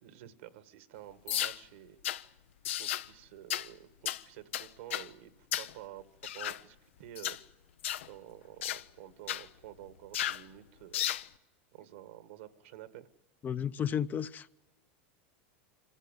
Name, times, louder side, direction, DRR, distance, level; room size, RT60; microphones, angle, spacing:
voice 1, 0.0-2.0 2.8-5.3 5.6-6.0 6.3-7.4 8.0-11.1 11.7-13.1, right 13 dB, 75° right, 1.7 m, -50 dB
sound 1, 1.3-1.6 2.0-2.2 2.6-3.1 3.5-3.7 4.0-4.2 4.5-5.1 5.5-5.7 6.2-6.6 7.1-7.4 7.8-8.1 8.6-8.8 9.3-9.4 10.1-10.4 10.9-11.3, left 12 dB, 80° left, 0.7 m, -34 dB
voice 2, 13.4-14.6, left 8 dB, 30° left, 0.7 m, -33 dB
25.0 x 15.5 x 9.2 m
hypercardioid pair, 115°, 7 cm